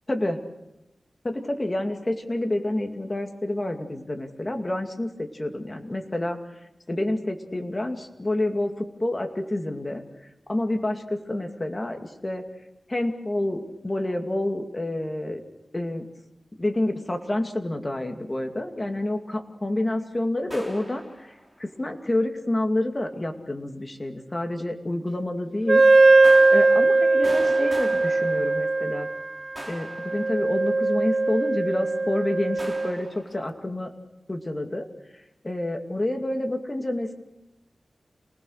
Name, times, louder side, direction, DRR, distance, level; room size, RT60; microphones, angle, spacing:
voice 1, 0.1-0.4 1.2-6.4 6.9-10.0 10.5-12.4 12.9-15.4 15.7-16.0 16.6-21.3 21.6-25.8 26.5-29.1 29.7-33.9 34.3-34.9 35.4-37.1, left 1 dB, 25° left, 5 dB, 2.4 m, -28 dB
sound 1, 20.5-21.6 26.2-29.1 29.6-30.9 32.6-33.5, equal, ahead, 3.3 m, -41 dB
Wind instrument woodwind instrument, 25.7-33.0, right 3 dB, 50° right, 1.5 m, -20 dB
28.0 x 19.5 x 6.5 m, 0.93 s
wide cardioid pair, 95°, 0 cm